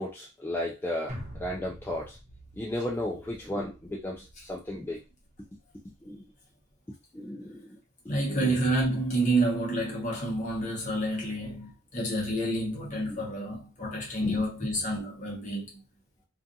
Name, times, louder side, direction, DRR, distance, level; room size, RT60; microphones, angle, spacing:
voice 1, 0.0-2.2 2.6-5.0 6.0-6.2 7.1-7.8 8.1-8.5 13.1-13.2 14.2-14.4, left 1 dB, 10° left, 0.3 m, -34 dB
sound 1, 1.1-5.5 5.9-6.0, equal, 35° right, 0.9 m, -46 dB
voice 2, 8.1-15.8, right 1 dB, 35° left, 0.9 m, -29 dB
2.4 x 2.4 x 2.6 m
head